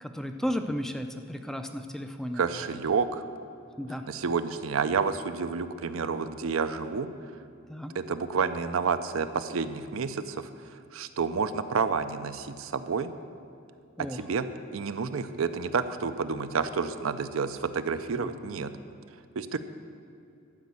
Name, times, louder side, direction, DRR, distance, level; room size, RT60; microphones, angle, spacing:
voice 1, 0.0-2.4 3.8-4.1 7.7-7.9 14.0-14.2 18.1-18.3, equal, ahead, 6 dB, 0.4 m, -34 dB
voice 2, 2.3-3.2 4.1-7.1 7.9-10.5 10.9-13.1 14.1-14.5 14.7-18.7 19.4-19.6, right 5 dB, 75° right, 10 dB, 0.5 m, -29 dB
12.0 x 5.2 x 8.4 m, 2.6 s
head